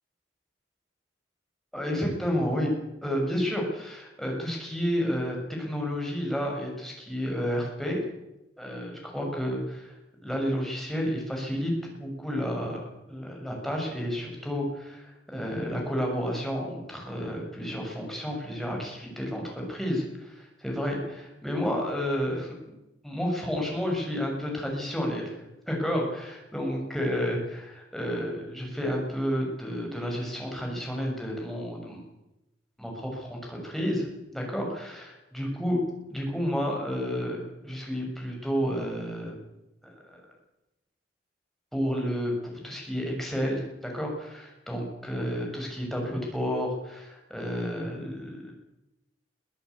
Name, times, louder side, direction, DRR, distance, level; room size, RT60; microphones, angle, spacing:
voice 1, 1.7-2.7 3.0-8.0 8.6-9.9 10.2-22.7 23.0-25.4 25.7-32.0 32.8-35.8 36.1-39.4 39.8-39.9 41.7-48.5, equal, ahead, -1 dB, 6.9 m, -31 dB
23.5 x 14.5 x 8.6 m, 0.94 s
head